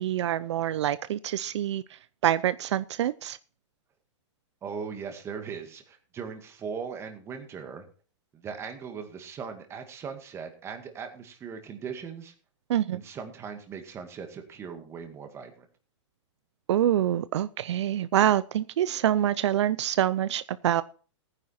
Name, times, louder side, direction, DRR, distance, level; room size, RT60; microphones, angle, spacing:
voice 1, 0.0-3.4 12.7-13.0 16.7-20.8, right 11 dB, 70° right, 16 dB, 0.6 m, -26 dB
voice 2, 4.6-7.9 8.3-12.3 12.9-15.7, right 6 dB, 15° right, 6 dB, 2.1 m, -39 dB
15.5 x 9.9 x 4.3 m, 0.40 s
supercardioid pair, 160°, 15 cm